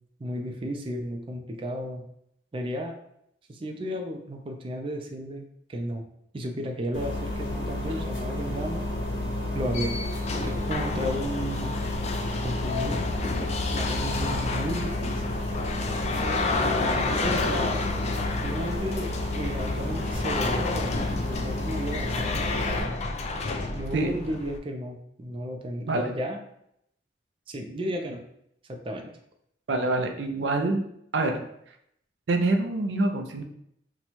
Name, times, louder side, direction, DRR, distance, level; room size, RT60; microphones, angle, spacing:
voice 1, 0.2-2.0 2.5-3.0 3.5-6.0 6.3-8.8 9.5-10.0 10.4-11.8 12.4-13.0 13.7-15.2 15.9-17.9 18.4-21.0 21.3-23.0 23.7-26.4 27.5-28.2 28.7-29.1, equal, 30° right, 2 dB, 0.4 m, -33 dB
sound 1, 6.9-22.8, left 1 dB, 80° left, 1.1 m, -31 dB
sound 2, 9.4-24.6, left 3 dB, 40° left, 0.3 m, -31 dB
voice 2, 29.7-30.8 31.1-31.4 32.3-33.4, right 2 dB, 85° right, 4 dB, 0.5 m, -25 dB
2.9 x 2.2 x 4.2 m, 0.73 s
head